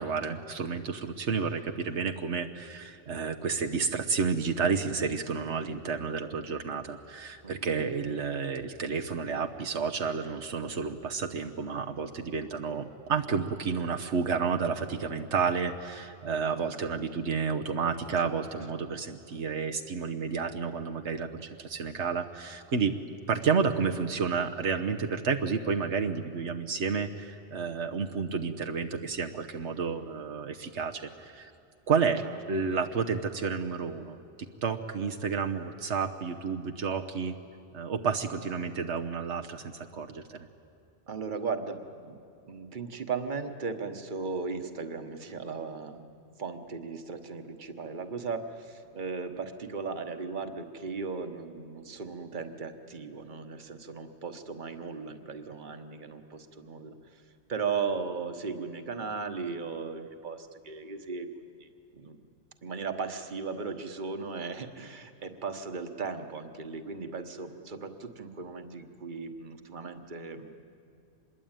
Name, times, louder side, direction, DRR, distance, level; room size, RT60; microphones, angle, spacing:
voice 1, 0.0-22.9 23.3-31.5 31.9-32.2 32.5-37.4 37.7-40.5, right 5 dB, 80° right, 4 dB, 1.3 m, -31 dB
voice 2, 7.4-7.8 18.2-18.4 32.2-32.4 41.1-42.2 42.4-46.0 46.4-61.7 61.9-62.2 62.6-70.5, right 5 dB, 45° right, 7 dB, 1.4 m, -37 dB
25.5 x 21.5 x 9.0 m, 2.6 s
omnidirectional pair, 1.2 m